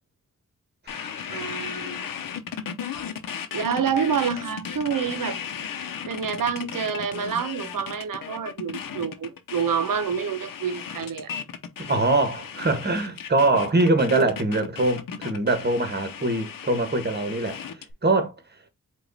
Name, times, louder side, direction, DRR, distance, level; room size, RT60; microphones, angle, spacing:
sound 1, 0.9-17.9, left 8 dB, 90° left, 0.7 m, -36 dB
voice 1, 1.3-2.1 3.5-5.4 6.0-11.3, right 7 dB, 80° right, 0.8 m, -27 dB
voice 2, 11.8-17.7 18.0-18.3, right 2 dB, 30° right, 1.3 m, -23 dB
4.9 x 2.5 x 3.9 m
cardioid pair, 50°, 33 cm